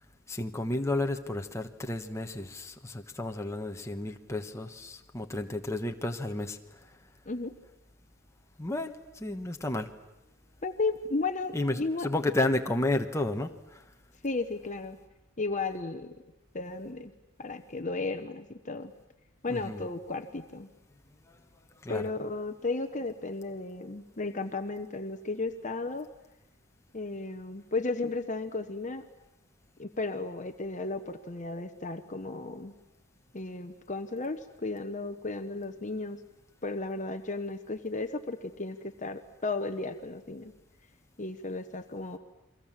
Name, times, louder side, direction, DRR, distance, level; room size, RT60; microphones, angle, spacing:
voice 1, 0.3-6.6 8.6-9.9 11.5-13.8 19.5-19.8 21.8-22.0, left 2 dB, 15° left, 4 dB, 1.2 m, -32 dB
voice 2, 10.6-12.1 14.2-15.0 15.4-16.2 16.5-17.1 17.4-18.9 19.4-20.7 21.9-26.1 26.9-29.0 29.8-32.7 33.3-36.2 36.6-40.5 41.2-42.2, left 3 dB, 35° left, 8 dB, 1.0 m, -34 dB
29.5 x 23.5 x 7.5 m, 0.94 s
head